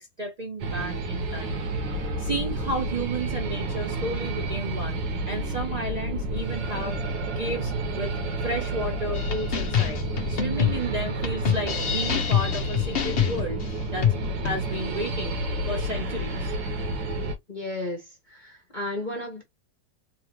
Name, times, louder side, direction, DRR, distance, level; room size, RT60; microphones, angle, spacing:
voice 1, 0.0-1.6 2.0-7.0 7.4-13.6 13.9-14.1 14.4-15.4 15.7-16.6, right 1 dB, 60° right, 0.4 m, -33 dB
sound 1, 0.6-17.3, right 1 dB, 80° right, 1.7 m, -30 dB
sound 2, 9.1-14.6, left 9 dB, 80° left, 0.5 m, -26 dB
voice 2, 17.5-19.4, left 1 dB, 35° left, 0.8 m, -34 dB
3.8 x 2.8 x 2.9 m
omnidirectional pair, 2.0 m